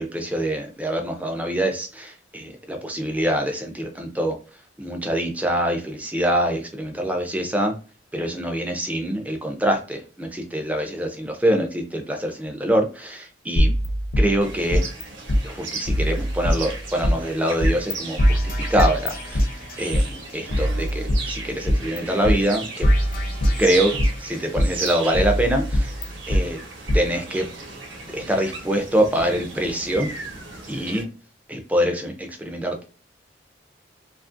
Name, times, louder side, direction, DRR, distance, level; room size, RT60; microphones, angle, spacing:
voice 1, 0.0-4.4 4.8-7.8 8.1-13.7 14.2-14.9 15.4-19.5 19.8-22.9 23.6-25.9 26.3-26.6 26.9-27.5 28.1-30.1 30.7-31.1 31.5-32.8, right 1 dB, 10° right, 4 dB, 0.4 m, -24 dB
sound 1, 13.6-15.0 15.3-15.4 15.9-17.1 17.6-17.9 18.2-20.0 20.5-22.0 22.2-22.3 22.8-24.2 24.6-26.4 26.9-27.0, equal, 45° left, 0.5 m, -22 dB
sound 2, 14.4-31.0, right 3 dB, 75° right, 0.9 m, -36 dB
2.8 x 2.4 x 2.5 m, 0.35 s
head